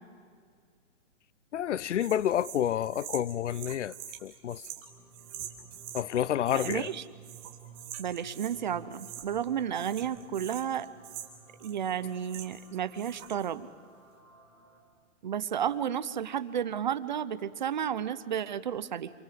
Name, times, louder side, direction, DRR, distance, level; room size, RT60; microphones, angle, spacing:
voice 1, 1.5-3.9 4.2-4.6 5.9-6.9, left 10 dB, 65° left, 0.6 m, -29 dB
sound 1, 2.0-6.1 6.5-7.0 7.2-8.6 8.9-9.5 9.7-12.7 12.9-13.5, right 11 dB, 15° right, 1.4 m, -45 dB
sound 2, 4.8-14.8, right 4 dB, 15° left, 3.5 m, -55 dB
voice 2, 6.5-7.0 8.0-10.9 11.6-13.7 15.2-19.1, right 9 dB, 35° right, 0.8 m, -32 dB
27.0 x 23.0 x 7.7 m
hypercardioid pair, 170°, 38 cm